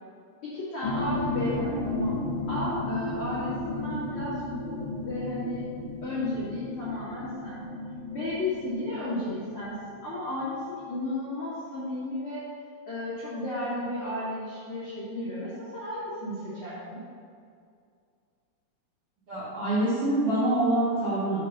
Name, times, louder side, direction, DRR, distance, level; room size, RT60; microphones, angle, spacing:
voice 1, 0.4-5.6 6.0-7.6 8.1-12.4 12.9-17.0, left 1 dB, 85° left, -10 dB, 1.2 m, -33 dB
sound 1, 0.8-10.1 10.4-10.5, left 2 dB, 60° left, 2.2 m, -33 dB
voice 2, 19.3-21.4, right 1 dB, 60° right, -11 dB, 1.5 m, -25 dB
6.3 x 5.4 x 5.9 m, 2.3 s
omnidirectional pair, 5.5 m